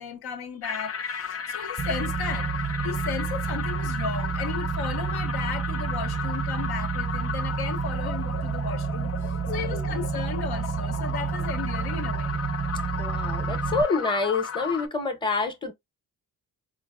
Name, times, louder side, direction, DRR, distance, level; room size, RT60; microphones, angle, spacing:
voice 1, 0.0-2.5 2.8-12.4, left 6 dB, 75° left, 0.8 m, -35 dB
sound 1, 0.6-14.9, left 7 dB, 40° left, 0.5 m, -35 dB
sound 2, 1.8-13.8, right 6 dB, 20° right, 0.3 m, -30 dB
voice 2, 9.5-9.9 13.0-15.7, left 3 dB, 10° left, 0.8 m, -27 dB
3.8 x 2.1 x 2.3 m
cardioid pair, 65°, 38 cm